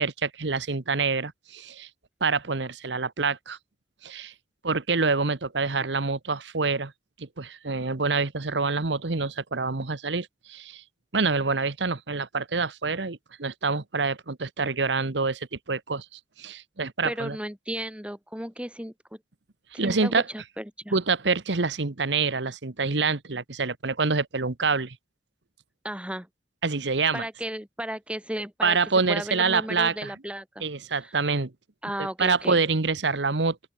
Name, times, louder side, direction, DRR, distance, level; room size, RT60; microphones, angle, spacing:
voice 1, 0.0-1.9 2.2-3.6 4.0-4.3 4.6-6.9 7.2-10.8 11.1-17.4 19.8-20.2 20.9-25.0 26.6-27.3 28.6-30.1 30.6-31.5 32.2-33.6, right 4 dB, 85° right, 1.2 m, -26 dB
voice 2, 17.0-18.9 19.7-21.0 25.8-26.3 27.1-28.8 29.1-30.7 31.0-31.1 31.8-32.6, right 1 dB, 5° right, 7.0 m, -34 dB
open air
head